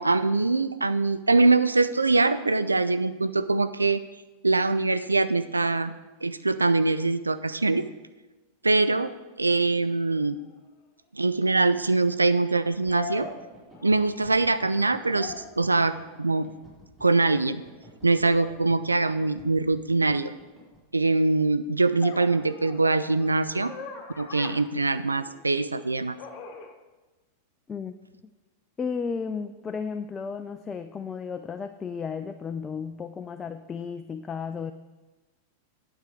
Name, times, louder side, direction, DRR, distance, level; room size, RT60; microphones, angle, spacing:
voice 1, 0.0-4.0 4.4-5.9 6.2-7.8 8.6-9.1 9.4-10.4 11.1-13.3 13.8-16.5 17.0-17.6 18.0-20.3 20.9-23.7 24.2-26.2, right 3 dB, 80° right, 12 dB, 0.3 m, -23 dB
sound 1, 10.5-10.6 12.9-14.2 14.6-15.6 18.3-18.6 22.0-25.5 26.2-26.7, left 6 dB, 40° left, 1.1 m, -41 dB
sound 2, 12.8-20.8, right 1 dB, 15° right, 3.8 m, -51 dB
voice 2, 28.8-34.7, left 5 dB, 20° left, 8 dB, 0.4 m, -33 dB
9.4 x 7.7 x 4.8 m, 1.2 s
figure-of-eight pair, 90°, 0 cm